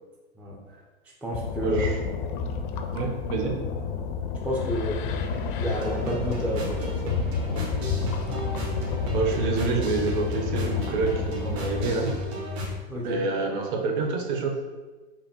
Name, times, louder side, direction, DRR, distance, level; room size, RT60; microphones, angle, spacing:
voice 1, 0.4-0.8 1.2-1.9 3.4-3.5 4.4-5.0 5.5-7.2 12.9-13.2, equal, 5° right, -4 dB, 0.3 m, -30 dB
sound 1, 1.3-11.9, left 5 dB, 50° left, 0.5 m, -30 dB
voice 2, 1.6-2.0 2.9-3.6 8.0-8.1 9.1-12.1 13.0-14.5, right 4 dB, 50° right, 2 dB, 0.7 m, -27 dB
sound 2, 5.7-12.7, equal, 65° right, 1.1 m, -34 dB
5.6 x 2.1 x 2.9 m, 1.3 s
hypercardioid pair, 105°, 33 cm